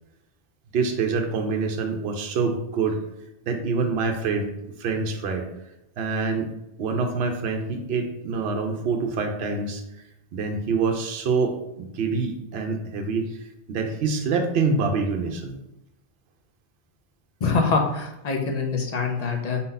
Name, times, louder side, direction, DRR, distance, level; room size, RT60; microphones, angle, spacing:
voice 1, 0.7-3.0 3.5-4.5 4.8-5.5 6.0-6.5 6.8-9.8 10.3-13.4 13.7-15.6, right 4 dB, 65° right, 3 dB, 0.8 m, -26 dB
voice 2, 17.4-19.6, left 4 dB, 45° left, 2 dB, 0.7 m, -24 dB
4.1 x 2.7 x 3.8 m, 0.88 s
omnidirectional pair, 1.2 m